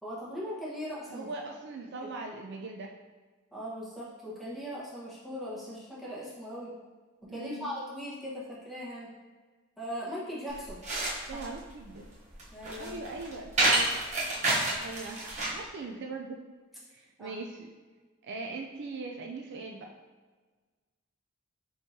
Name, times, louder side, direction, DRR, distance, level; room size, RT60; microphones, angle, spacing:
voice 1, 0.0-1.3 2.0-2.1 3.5-6.7 7.2-9.1 9.8-10.8 11.3-11.4 12.5-13.2 17.2-17.4, equal, ahead, -8 dB, 1.1 m, -39 dB
voice 2, 1.1-2.9 7.3-7.7 11.3-12.1 12.7-13.9 14.8-15.2 15.5-16.4 16.9-17.7 18.2-19.9, right 3 dB, 55° right, 2 dB, 0.3 m, -40 dB
sound 1, 10.5-15.7, right 2 dB, 35° right, 0.8 m, -29 dB
5.3 x 3.1 x 2.7 m, 1.4 s
head